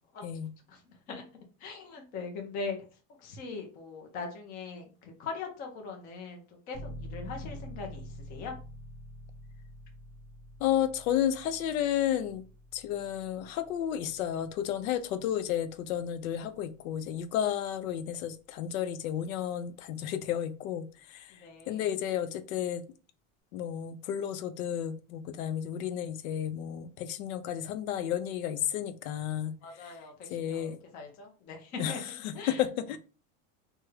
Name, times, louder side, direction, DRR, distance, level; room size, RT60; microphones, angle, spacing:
voice 1, 0.2-0.5 10.6-12.4 12.7-22.8 23.5-30.0 30.3-30.8 31.8-33.0, left 10 dB, 85° left, 12 dB, 0.6 m, -32 dB
voice 2, 1.6-2.8 3.2-8.0 8.3-8.5 21.4-21.8 29.6-30.1 30.4-30.7 30.9-32.0 32.3-32.6, left 4 dB, 20° left, 2 dB, 0.4 m, -40 dB
sound 1, 6.7-17.3, equal, 60° left, 1.2 m, -47 dB
3.4 x 2.1 x 3.1 m, 0.35 s
supercardioid pair, 165°, 41 cm